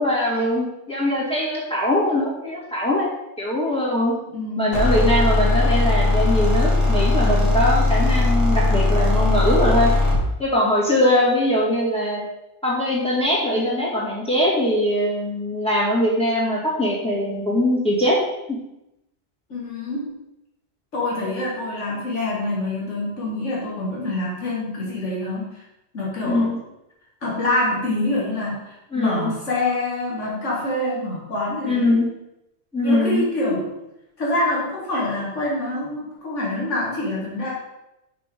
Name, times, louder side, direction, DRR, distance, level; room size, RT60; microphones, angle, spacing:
voice 1, 0.0-3.1 3.4-4.1 4.6-9.9 10.4-12.2 12.6-18.2 18.5-18.6 26.2-26.6 28.9-29.3 31.6-32.1 32.7-33.5, left 1 dB, 5° left, -7 dB, 2.1 m, -21 dB
voice 2, 4.3-4.8 19.5-20.2 20.9-25.5 25.9-26.5 27.2-32.0 32.8-33.6 34.2-37.5, left 1 dB, 85° left, -5 dB, 2.2 m, -26 dB
sound 1, 4.7-10.3, left 2 dB, 50° left, 1.6 m, -19 dB
6.0 x 5.8 x 3.7 m, 0.90 s
omnidirectional pair, 1.2 m